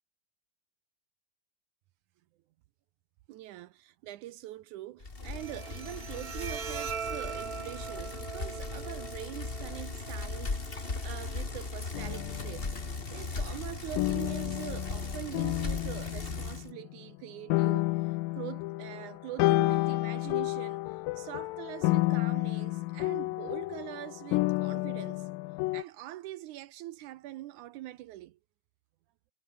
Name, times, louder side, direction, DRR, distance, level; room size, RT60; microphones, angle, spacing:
voice 1, 3.3-12.8 13.1-25.3 25.7-28.4, right 15 dB, 75° right, 1.8 m, -43 dB
Bicycle, 5.0-16.7, left 3 dB, 20° left, 1.5 m, -38 dB
Bowed string instrument, 5.2-12.2, right 6 dB, 50° right, 1.0 m, -42 dB
sound 1, 11.9-13.1 14.0-17.2 17.5-25.8, left 20 dB, 80° left, 2.2 m, -30 dB
omnidirectional pair, 4.3 m